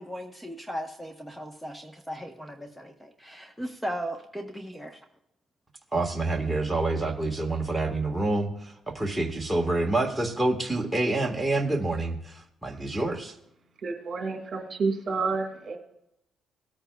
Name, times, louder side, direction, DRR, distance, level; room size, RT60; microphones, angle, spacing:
voice 1, 0.0-5.0, equal, 5° left, 5 dB, 1.0 m, -37 dB
voice 2, 5.9-13.3, right 2 dB, 10° right, 1 dB, 1.6 m, -27 dB
voice 3, 13.8-15.8, right 4 dB, 50° right, 5 dB, 2.1 m, -29 dB
18.5 x 8.8 x 2.3 m, 0.81 s
cardioid pair, 90°, 0 cm